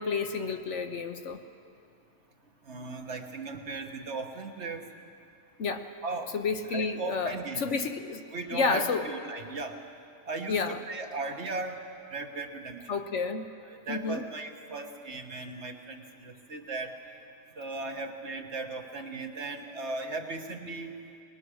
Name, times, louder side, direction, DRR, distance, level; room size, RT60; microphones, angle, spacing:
voice 1, 0.0-1.4 5.6-5.9 6.3-8.2 8.5-9.1 10.5-10.8 12.9-13.5 13.9-14.3, left 4 dB, 60° left, 7 dB, 1.2 m, -30 dB
voice 2, 2.7-4.9 6.0-6.3 6.7-7.7 8.3-9.8 10.3-11.8 12.1-13.0 13.6-16.9 17.6-21.0, right 3 dB, 55° right, 4 dB, 1.6 m, -37 dB
22.5 x 21.0 x 6.3 m, 2.5 s
omnidirectional pair, 1.5 m